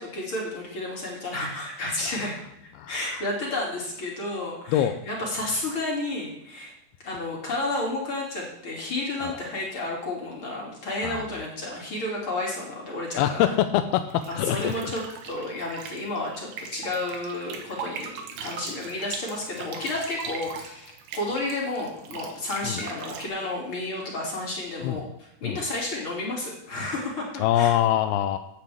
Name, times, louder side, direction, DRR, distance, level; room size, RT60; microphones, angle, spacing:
voice 1, 0.0-2.4 2.6-6.7 7.0-13.5 14.5-27.7, left 2 dB, 35° left, -3 dB, 2.8 m, -31 dB
voice 2, 2.8-3.3 4.7-5.0 9.2-9.4 11.0-11.2 13.2-14.9 22.6-22.8 24.8-25.0 25.4-25.6 27.4-28.4, left 11 dB, 85° left, 8 dB, 2.3 m, -24 dB
sound 1, 13.9-23.3, right 6 dB, 75° right, 3.3 m, -39 dB
15.0 x 9.2 x 3.5 m, 0.80 s
omnidirectional pair, 4.8 m